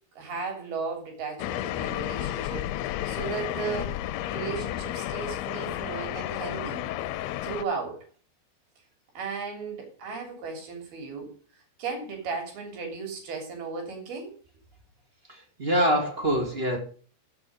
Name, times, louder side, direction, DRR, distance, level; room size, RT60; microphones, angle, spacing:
voice 1, 0.2-4.0 4.3-6.9 7.4-8.0 9.2-11.3 11.8-14.3, right 5 dB, 70° right, 3 dB, 5.2 m, -35 dB
sound 1, 1.4-7.6, left 13 dB, 85° left, 2.7 m, -32 dB
voice 2, 15.6-16.8, equal, 15° right, 2 dB, 2.4 m, -24 dB
16.0 x 6.8 x 5.0 m, 0.42 s
omnidirectional pair, 4.6 m